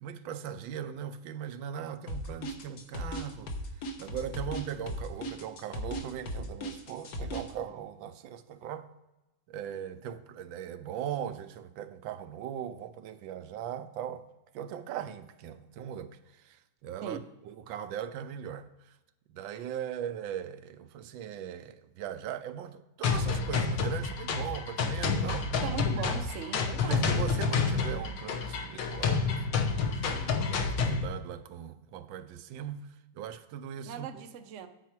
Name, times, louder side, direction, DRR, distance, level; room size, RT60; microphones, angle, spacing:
voice 1, 0.0-3.5 4.0-8.9 9.5-14.2 14.5-16.2 16.4-16.6 16.8-17.2 17.5-18.7 19.3-25.5 26.0-26.1 26.8-32.9 33.1-34.1, right 9 dB, 80° right, 1.3 m, -39 dB
sound 1, 2.1-7.5, equal, 55° left, 1.4 m, -36 dB
sound 2, 23.0-31.0, left 5 dB, 75° left, 1.7 m, -29 dB
voice 2, 25.6-27.0 33.8-34.7, right 8 dB, 60° right, 0.7 m, -39 dB
9.4 x 6.9 x 4.4 m
omnidirectional pair, 2.1 m